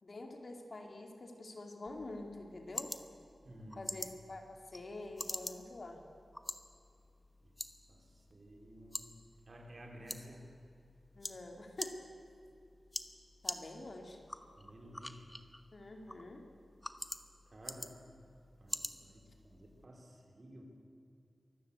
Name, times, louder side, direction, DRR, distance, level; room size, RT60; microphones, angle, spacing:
voice 1, 0.0-2.9 3.8-6.0 11.2-12.0 13.4-14.2 15.7-16.5, left 2 dB, 50° left, 3 dB, 2.5 m, -47 dB
sound 1, 1.9-19.9, left 1 dB, 10° left, 1.0 m, -47 dB
voice 2, 3.4-3.9 7.4-9.2 9.5-10.5 14.6-15.3 17.5-18.1 18.6-20.7, equal, 45° right, 2 dB, 3.4 m, -54 dB
24.0 x 13.5 x 8.3 m, 2.5 s
wide cardioid pair, 100°, 0 cm